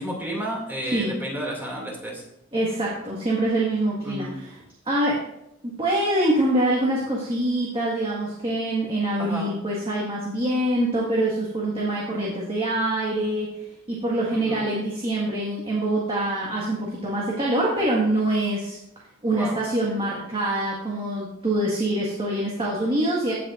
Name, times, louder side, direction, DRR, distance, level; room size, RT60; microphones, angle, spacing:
voice 1, 0.0-2.2 4.0-4.4 9.2-9.5 14.3-14.6 19.3-19.6, right 1 dB, 10° right, -3 dB, 2.4 m, -31 dB
voice 2, 2.5-4.6 4.9-5.2 5.6-13.5 13.9-18.8 19.2-23.3, right 1 dB, 25° right, -4 dB, 1.7 m, -25 dB
16.0 x 6.7 x 2.5 m, 0.80 s
head